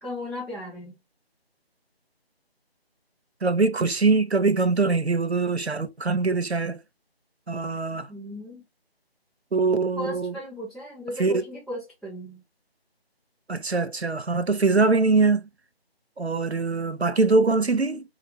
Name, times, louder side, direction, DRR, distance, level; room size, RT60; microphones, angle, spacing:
voice 1, 0.0-1.0 8.1-8.6 10.0-12.4, left 1 dB, ahead, 0.5 m, -36 dB
voice 2, 3.4-6.8 7.5-8.1 9.5-10.3 11.2-11.4 13.5-15.5 16.2-18.0, right 3 dB, 90° right, 0.8 m, -23 dB
5.0 x 2.1 x 4.2 m
figure-of-eight pair, 160°, 31 cm